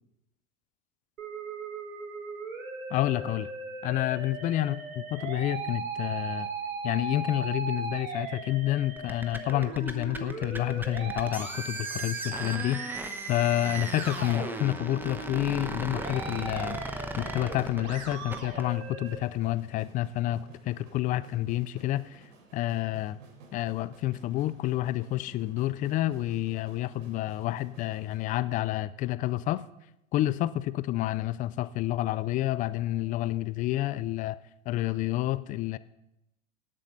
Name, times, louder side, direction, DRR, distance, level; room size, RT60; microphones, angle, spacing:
Musical instrument, 1.2-19.1, right 4 dB, 85° right, 3.0 m, -38 dB
voice 1, 2.9-3.5 3.8-6.5 6.8-13.0 13.3-16.8 17.2-22.2 22.5-23.2 23.5-29.6 30.1-34.4 34.7-35.8, left 15 dB, 20° left, 17 dB, 0.3 m, -29 dB
sound 1, 9.0-18.7, right 2 dB, 5° right, 0.9 m, -38 dB
sound 2, 17.4-28.3, right 4 dB, 70° right, 3.8 m, -54 dB
18.0 x 7.5 x 5.4 m, 0.88 s
hypercardioid pair, 115°, 40 cm